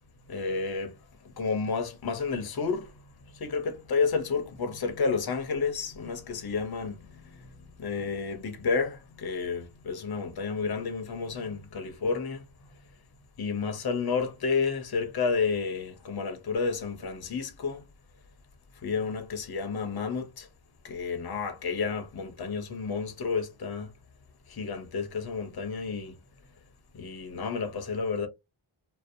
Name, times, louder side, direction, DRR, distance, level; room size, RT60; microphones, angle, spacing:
voice 1, 0.3-3.0 3.3-12.5 13.4-17.9 18.8-20.5 20.8-23.9 24.5-26.2 26.9-28.3, left 5 dB, 50° left, 0.6 m, -31 dB
2.6 x 2.0 x 2.5 m
wide cardioid pair, 70°, 48 cm